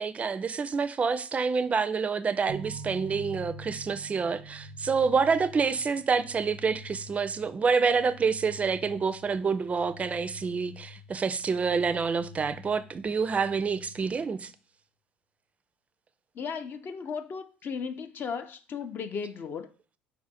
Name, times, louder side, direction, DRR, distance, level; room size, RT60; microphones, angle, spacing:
voice 1, 0.0-14.5, right 5 dB, 30° right, 0.4 m, -27 dB
sound 1, 2.4-14.4, left 3 dB, 85° left, 1.2 m, -48 dB
sound 2, 2.5-6.5, right 10 dB, 85° right, 0.6 m, -45 dB
voice 2, 16.3-19.7, left 6 dB, 45° left, 0.5 m, -36 dB
4.4 x 2.5 x 4.2 m
hypercardioid pair, 70°, 5 cm